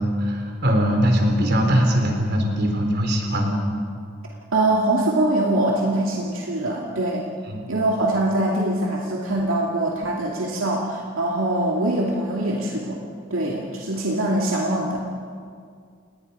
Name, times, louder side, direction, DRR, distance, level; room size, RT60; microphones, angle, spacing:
voice 1, 0.0-3.6 7.5-7.7, equal, 50° right, 3 dB, 3.7 m, -21 dB
voice 2, 4.5-7.3 7.7-13.0 13.3-15.0, right 1 dB, 70° right, -2 dB, 2.4 m, -23 dB
30.0 x 19.5 x 5.6 m, 2.2 s
head